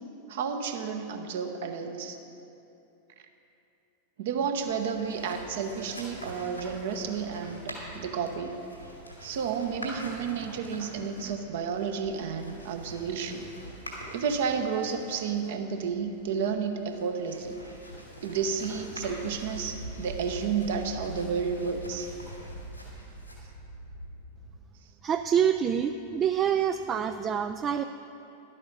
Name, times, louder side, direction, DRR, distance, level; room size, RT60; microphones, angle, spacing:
voice 1, 0.3-2.2 4.2-8.6 9.2-13.5 14.1-17.6 18.2-22.1, right 6 dB, 55° right, 6 dB, 0.9 m, -31 dB
sound 1, 4.6-24.6, right 1 dB, 90° left, 2.1 m, -44 dB
voice 2, 25.0-27.8, right 8 dB, 25° right, 9 dB, 0.3 m, -26 dB
11.5 x 8.4 x 5.5 m, 2.8 s
figure-of-eight pair, 90°, 0 cm